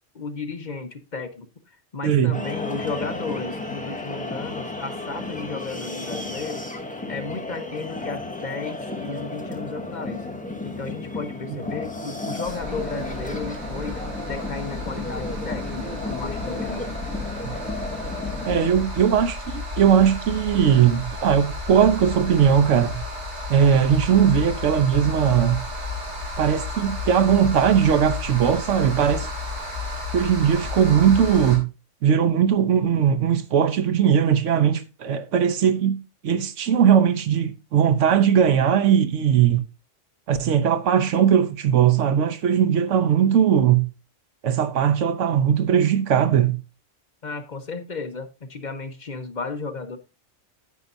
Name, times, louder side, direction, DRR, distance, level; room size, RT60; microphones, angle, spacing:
voice 1, 0.1-6.7 7.1-10.2 10.6-14.0 14.3-16.9 47.2-50.0, left 4 dB, 40° left, 1.0 m, -34 dB
voice 2, 2.0-2.4 17.4-17.5 18.5-23.0 23.5-25.6 26.4-29.3 30.1-31.7 32.0-36.0 36.2-39.6 40.3-43.9 44.4-46.6, right 8 dB, 80° right, 1.1 m, -19 dB
sound 1, 2.3-18.7, left 2 dB, 5° left, 0.9 m, -33 dB
sound 2, 12.4-31.6, left 3 dB, 65° right, 3.3 m, -32 dB
9.5 x 8.4 x 2.6 m
omnidirectional pair, 1.2 m